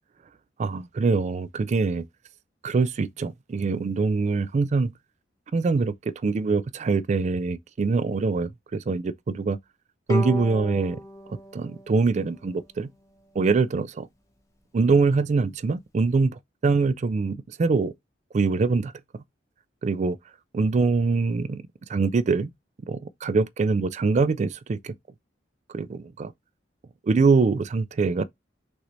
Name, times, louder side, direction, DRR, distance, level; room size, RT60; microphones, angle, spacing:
voice 1, 0.6-2.1 2.6-4.9 5.5-9.6 10.1-11.0 11.3-12.9 13.4-14.1 14.7-17.9 18.3-19.2 19.8-20.2 20.5-21.6 21.9-22.5 22.9-24.9 25.7-26.3 27.0-28.2, right 4 dB, 40° right, 0.3 m, -24 dB
Bowed string instrument, 10.1-13.4, equal, 15° left, 0.9 m, -35 dB
6.1 x 2.6 x 3.0 m
head